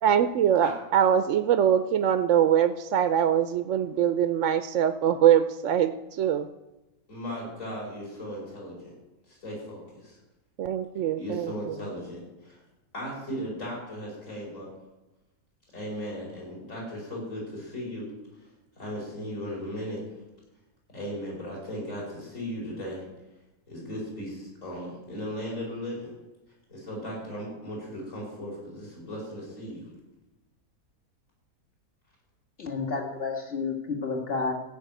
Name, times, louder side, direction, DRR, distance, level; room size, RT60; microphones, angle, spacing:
voice 1, 0.0-6.5 10.6-11.7, right 9 dB, 65° right, 11 dB, 0.8 m, -23 dB
voice 2, 7.1-8.9 9.3-10.2 11.2-12.6 12.9-14.7 15.7-18.1 18.8-20.0 20.9-23.0 23.7-26.1 26.7-29.9, equal, 55° left, -3 dB, 5.7 m, -37 dB
voice 3, 32.6-34.5, left 4 dB, 40° left, 1 dB, 2.0 m, -30 dB
15.0 x 6.0 x 9.2 m, 1.0 s
omnidirectional pair, 1.6 m